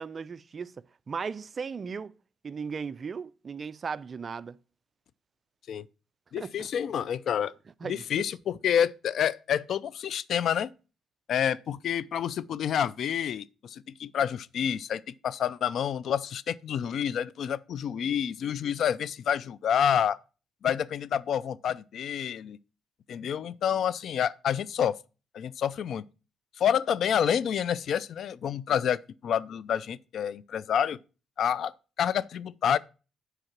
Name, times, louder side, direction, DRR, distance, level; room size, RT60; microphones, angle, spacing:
voice 1, 0.0-2.1 2.4-4.6 6.4-6.7 7.8-8.3, right 5 dB, 40° right, 0.4 m, -37 dB
voice 2, 6.3-7.5 7.8-10.7 11.3-20.2 20.6-22.6 23.1-25.0 25.3-26.0 26.6-31.0 31.4-31.7 32.0-32.8, left 9 dB, 65° left, 0.4 m, -28 dB
8.0 x 4.8 x 5.9 m
cardioid pair, 90°, 0 cm